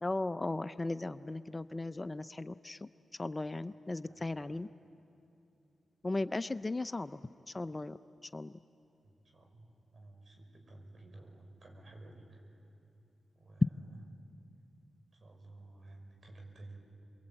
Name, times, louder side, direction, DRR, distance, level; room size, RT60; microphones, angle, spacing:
voice 1, 0.0-2.9 3.2-4.7 6.0-7.2 7.5-8.0 8.3-8.5, left 2 dB, 25° left, 13 dB, 0.6 m, -37 dB
voice 2, 4.0-4.6 9.0-12.6 13.3-14.0 15.1-16.8, right 2 dB, 55° right, 3 dB, 5.7 m, -54 dB
26.5 x 22.5 x 8.9 m, 2.8 s
cardioid pair, 60°, 0 cm